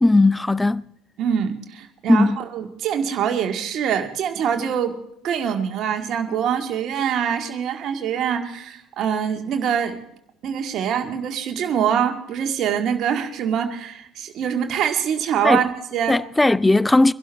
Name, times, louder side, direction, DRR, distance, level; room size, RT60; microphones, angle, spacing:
voice 1, 0.0-0.8 2.1-2.4 15.4-15.6 16.1-17.1, left 2 dB, 10° left, 0.4 m, -17 dB
voice 2, 1.2-5.0 5.2-10.0 10.4-16.2, right 8 dB, 50° right, 1.9 m, -24 dB
23.5 x 12.0 x 3.5 m
figure-of-eight pair, 60°, 0 cm